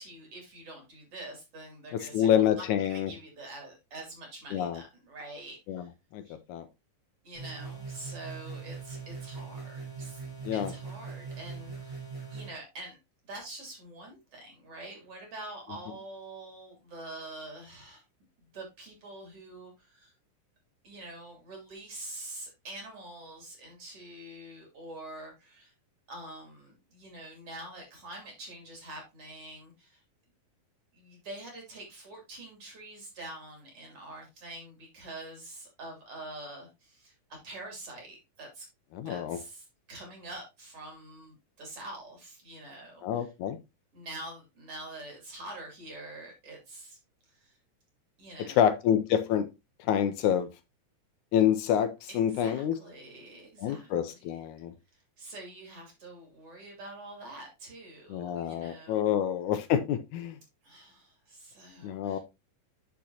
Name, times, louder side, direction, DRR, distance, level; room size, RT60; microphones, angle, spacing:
voice 1, 0.0-5.9 6.3-6.4 7.2-10.2 10.5-12.0 12.3-13.0 13.3-18.0 18.5-20.1 20.8-25.7 26.1-30.0 30.9-37.1 37.4-38.7 39.1-43.6 43.9-47.0 47.4-47.5 48.2-48.6 52.1-54.2 55.2-59.2 60.6-62.2, right 2 dB, 45° right, 3.6 m, -45 dB
voice 2, 1.9-3.1 4.5-4.8 5.7-5.9 6.1-6.2 6.5-6.7 10.5-10.7 38.9-39.4 43.0-43.6 48.5-49.5 49.9-50.5 51.3-52.8 53.6-54.7 58.1-60.4 61.8-62.2, left 9 dB, 80° left, 1.9 m, -27 dB
sound 1, 7.3-12.5, right 5 dB, 15° right, 1.5 m, -41 dB
8.2 x 6.4 x 2.8 m
omnidirectional pair, 3.7 m